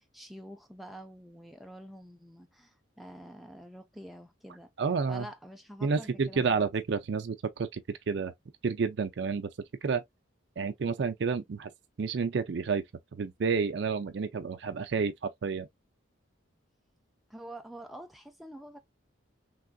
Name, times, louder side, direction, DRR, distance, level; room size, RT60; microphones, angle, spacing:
voice 1, 0.0-4.7 5.1-6.7 17.3-18.8, equal, ahead, 0.4 m, -47 dB
voice 2, 4.8-5.3 5.8-8.3 8.6-9.5 9.8-10.0 10.6-11.7 12.0-12.8 13.2-15.7, right 5 dB, 60° right, 0.4 m, -30 dB
3.4 x 2.4 x 2.2 m
head